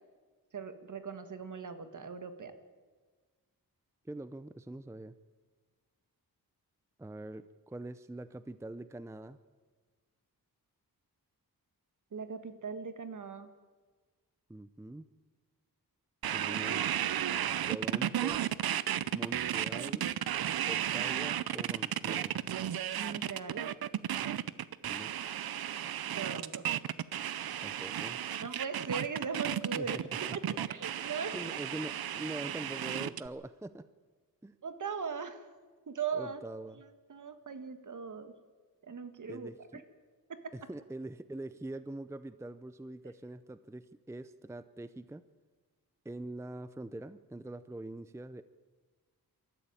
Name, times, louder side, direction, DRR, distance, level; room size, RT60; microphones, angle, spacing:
voice 1, 0.5-2.5 12.1-13.5 23.0-23.7 26.1-26.6 28.4-30.0 30.3-31.3 34.6-35.5 35.9-36.4 36.7-36.8 37.1-38.3 38.8-39.8 40.3-40.5, right 5 dB, 55° right, 9 dB, 1.8 m, -39 dB
voice 2, 4.0-5.1 7.0-9.4 14.5-15.1 16.3-17.0 17.7-18.5 19.1-20.1 20.6-22.4 24.8-25.1 27.6-28.2 29.8-30.6 31.3-33.9 34.4-34.6 36.1-36.8 39.3-39.8 40.5-45.2 46.0-48.4, right 1 dB, 10° right, 13 dB, 0.6 m, -43 dB
sound 1, 16.2-33.3, right 10 dB, 75° right, 0.7 m, -34 dB
23.0 x 14.0 x 9.1 m, 1.4 s
wide cardioid pair, 105°, 36 cm